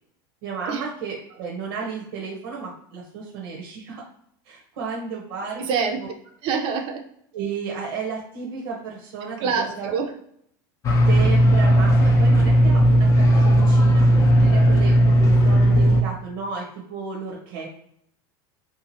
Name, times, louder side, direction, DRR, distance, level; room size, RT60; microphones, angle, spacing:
voice 1, 0.4-4.0 4.4-6.1 7.3-9.9 11.1-17.7, right 5 dB, 70° right, -3 dB, 0.9 m, -33 dB
voice 2, 5.6-6.0 6.4-7.0 9.4-10.1, right 5 dB, 50° right, 3 dB, 0.6 m, -25 dB
sound 1, 10.8-16.0, equal, 25° left, 0.6 m, -16 dB
2.8 x 2.4 x 2.7 m, 0.69 s
supercardioid pair, 125°, 12 cm